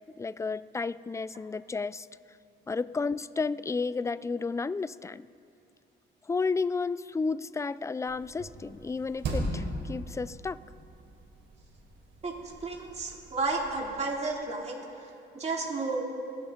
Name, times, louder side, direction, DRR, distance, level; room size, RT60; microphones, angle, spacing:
voice 1, 0.2-2.1 2.7-5.3 6.3-10.6, left 4 dB, 15° left, 17 dB, 0.4 m, -32 dB
sound 1, 8.1-13.9, right 1 dB, 70° right, 3.7 m, -39 dB
voice 2, 12.6-16.0, right 3 dB, 35° right, -2 dB, 2.7 m, -32 dB
27.0 x 12.0 x 3.8 m, 2.5 s
cardioid pair, 90°, 20 cm